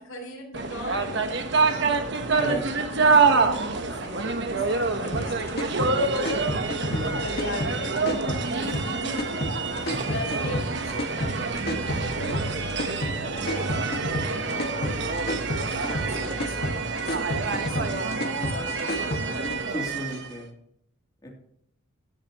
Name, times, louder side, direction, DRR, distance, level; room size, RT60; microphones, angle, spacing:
voice 1, 0.0-2.0 2.2-6.1 6.4-6.6 6.9-11.9 12.4-13.8 14.1-19.9, left 1 dB, 65° left, -5 dB, 5.8 m, -41 dB
sound 1, 0.5-20.4, right 4 dB, 55° right, 1.2 m, -26 dB
sound 2, 5.1-19.6, equal, 50° left, 1.9 m, -31 dB
voice 2, 6.9-7.2 9.9-10.0 19.7-20.5 21.2-21.3, left 1 dB, 20° left, -2 dB, 3.2 m, -33 dB
15.5 x 11.0 x 3.1 m, 0.71 s
head